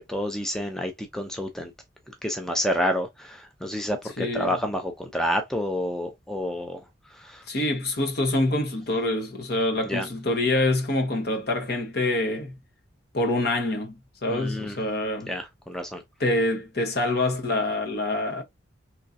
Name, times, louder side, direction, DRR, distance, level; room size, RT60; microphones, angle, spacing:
voice 1, 0.0-1.7 2.2-6.8 7.1-7.4 9.8-10.1 14.3-14.8 15.3-16.0, equal, 5° left, 0.5 m, -29 dB
voice 2, 4.2-4.5 7.5-12.6 13.1-15.3 16.2-18.4, left 2 dB, 55° left, 1.0 m, -26 dB
3.7 x 3.0 x 2.7 m
head